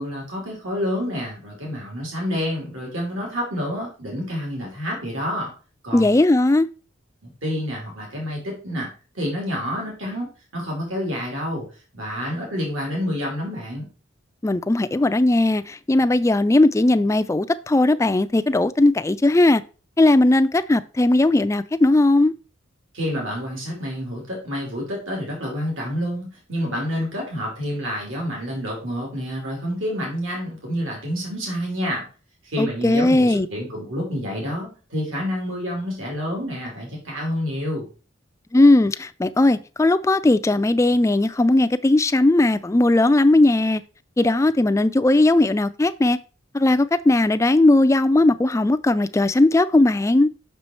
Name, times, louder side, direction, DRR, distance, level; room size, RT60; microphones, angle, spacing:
voice 1, 0.0-5.5 5.8-6.1 7.2-8.9 9.1-11.7 11.9-13.9 22.9-32.0 32.4-37.9, equal, 80° right, 3.0 m, -28 dB
voice 2, 5.9-6.7 14.4-19.6 20.0-22.3 32.6-33.5 38.5-43.8 44.2-46.2 46.5-50.3, left 2 dB, 15° left, 0.3 m, -18 dB
6.1 x 5.6 x 4.4 m
head